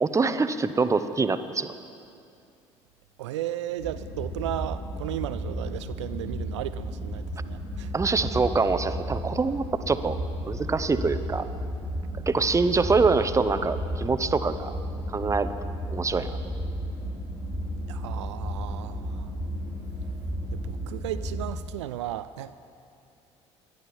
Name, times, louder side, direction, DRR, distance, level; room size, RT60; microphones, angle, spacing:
voice 1, 0.0-1.7 7.9-10.1 10.5-11.5 12.3-14.7 15.1-15.5 15.9-16.3, right 4 dB, 20° right, 11 dB, 0.8 m, -24 dB
voice 2, 3.2-7.9 12.7-12.8 17.9-19.3 20.5-22.5, right 13 dB, 75° right, 11 dB, 0.4 m, -35 dB
sound 1, 3.8-21.4, equal, 60° left, 3.3 m, -33 dB
20.0 x 11.5 x 4.4 m, 2.5 s
figure-of-eight pair, 55°, 15 cm